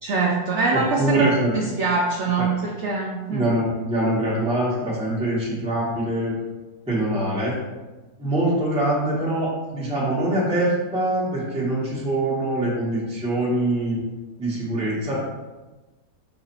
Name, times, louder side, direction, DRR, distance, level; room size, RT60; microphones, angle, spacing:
voice 1, 0.0-1.3 1.5-3.5, right 4 dB, 75° right, -1 dB, 0.6 m, -23 dB
voice 2, 0.7-1.5 2.4-2.5 3.3-6.4 6.9-7.6 8.2-14.0 14.4-15.1, right 1 dB, 5° right, -7 dB, 0.9 m, -24 dB
4.8 x 2.4 x 4.4 m, 1.2 s
omnidirectional pair, 1.8 m